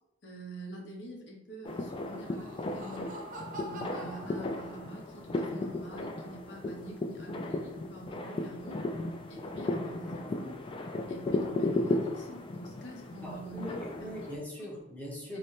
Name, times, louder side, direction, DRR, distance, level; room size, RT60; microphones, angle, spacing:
voice 1, 0.2-3.2 3.6-8.8 9.3-10.6 11.1-14.1 14.6-14.7 15.3-15.4, right 2 dB, 65° left, 0 dB, 0.8 m, -46 dB
sound 1, 1.6-14.4, left 2 dB, 30° left, 0.3 m, -35 dB
Laughter, 2.1-5.2, right 1 dB, 45° right, 0.5 m, -45 dB
voice 2, 13.2-15.4, left 1 dB, 10° left, -3 dB, 0.7 m, -41 dB
4.0 x 2.1 x 3.1 m, 0.87 s
head